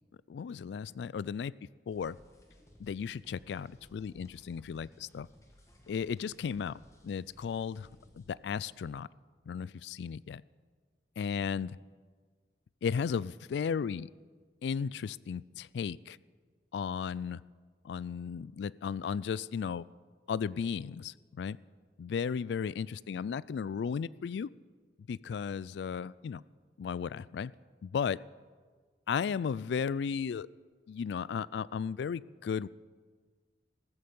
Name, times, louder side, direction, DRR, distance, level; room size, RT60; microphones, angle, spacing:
voice 1, 0.3-1.5 1.9-2.2 2.8-5.3 5.9-7.9 8.1-9.1 9.5-10.4 11.2-11.8 12.8-14.1 14.6-16.2 16.7-17.4 17.8-19.9 20.3-21.6 22.0-24.5 25.1-26.4 26.8-27.5 27.8-28.2 29.1-30.5 30.9-32.7, left 6 dB, 75° left, 21 dB, 0.3 m, -35 dB
sound 1, 1.9-8.3, equal, 15° left, 1.7 m, -60 dB
14.5 x 14.0 x 5.4 m, 1.5 s
head